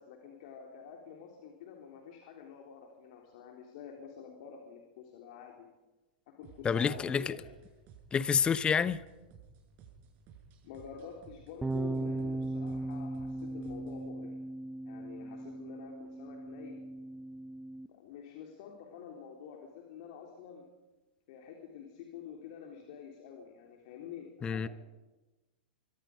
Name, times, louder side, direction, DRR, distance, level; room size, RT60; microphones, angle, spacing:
voice 1, 0.0-5.7 6.3-7.5 10.6-14.4 14.8-16.8 17.9-20.7 21.3-24.7, left 7 dB, 55° left, 2 dB, 3.6 m, -48 dB
sound 1, 6.4-14.1, right 6 dB, 40° right, 6.5 m, -57 dB
voice 2, 6.6-7.4 8.1-9.0 24.4-24.7, left 6 dB, 20° left, 16 dB, 0.9 m, -28 dB
sound 2, 11.6-17.9, right 2 dB, 10° right, 0.7 m, -38 dB
25.0 x 24.0 x 5.1 m, 1.2 s
figure-of-eight pair, 100°, 5 cm